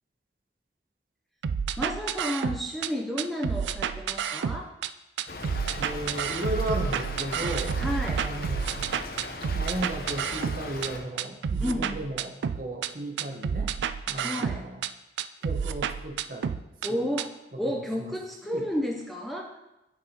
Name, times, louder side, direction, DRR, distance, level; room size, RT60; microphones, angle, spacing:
sound 1, 1.4-2.9 3.2-4.9 5.2-10.9 11.2-12.9 13.2-14.9 15.2-16.9 17.2-17.3, right 7 dB, 85° right, 0.3 m, -30 dB
voice 1, 1.8-4.7 7.8-8.3 11.6-12.0 14.1-14.7 16.8-19.6, equal, ahead, 0 dB, 0.5 m, -32 dB
Stream / Trickle dribble, 5.3-11.0, left 2 dB, 55° left, 0.8 m, -38 dB
voice 2, 5.8-7.8 8.1-8.6 9.5-13.7 14.1-14.8 15.4-16.6 17.6-18.1 18.4-18.7, right 1 dB, 50° right, 1 dB, 1.1 m, -35 dB
9.5 x 5.9 x 2.9 m, 0.92 s
head